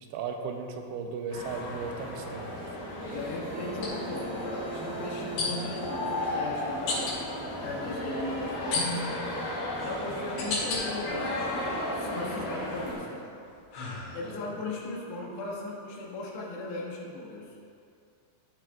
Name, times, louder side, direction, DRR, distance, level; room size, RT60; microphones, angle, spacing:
voice 1, 0.0-2.6 3.9-4.0 14.2-14.4, right 5 dB, 85° right, 4 dB, 2.8 m, -36 dB
sound 1, 0.9-1.1 3.7-3.9 5.4-5.8 6.9-7.2 8.7-9.3 9.9-10.8 11.4-12.0 12.5-14.5, left 3 dB, 70° left, 3.8 m, -33 dB
sound 2, 1.3-12.9, left 1 dB, 45° left, 2.0 m, -35 dB
voice 2, 3.1-7.3 7.6-9.2 9.8-13.3 14.1-17.6, left 3 dB, 90° left, -4 dB, 3.4 m, -38 dB
sound 3, 3.2-9.6, right 6 dB, 65° right, 2.4 m, -45 dB
13.0 x 6.1 x 2.3 m, 2.5 s
omnidirectional pair, 4.8 m